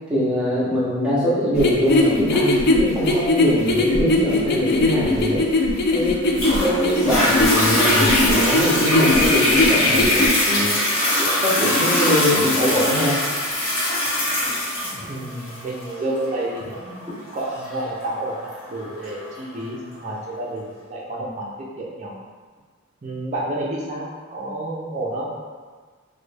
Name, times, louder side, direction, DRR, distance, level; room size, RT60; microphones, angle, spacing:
voice 1, 0.1-5.4 5.9-6.3 6.6-10.8 11.1-13.2, equal, 5° right, -9 dB, 0.8 m, -22 dB
sound 1, 1.5-10.3, left 2 dB, 50° left, 0.3 m, -20 dB
Toilet flush, 6.3-19.4 20.0-20.1, left 1 dB, 85° left, 1.0 m, -22 dB
sound 2, 7.1-12.5, left 2 dB, 35° left, 0.9 m, -27 dB
voice 2, 14.8-22.1 23.0-25.3, right 1 dB, 35° right, -4 dB, 0.5 m, -30 dB
3.1 x 2.2 x 3.2 m, 1.5 s
head